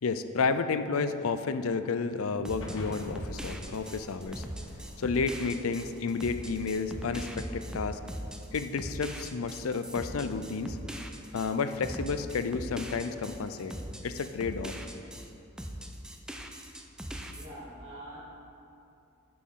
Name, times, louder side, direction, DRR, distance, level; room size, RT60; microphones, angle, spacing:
voice 1, 0.0-4.4 5.0-8.0 8.5-10.8 11.3-13.7 14.0-14.8, left 4 dB, 85° left, 10 dB, 0.5 m, -31 dB
sound 1, 2.5-15.3 15.6-17.5, equal, 5° right, 0.5 m, -40 dB
sound 2, 2.6-5.1, equal, 65° left, 1.4 m, -43 dB
sound 3, 2.6-8.6, equal, 50° right, 2.4 m, -55 dB
voice 2, 17.3-18.2, right 1 dB, 30° right, -11 dB, 2.5 m, -45 dB
15.5 x 6.0 x 3.9 m, 2.7 s
head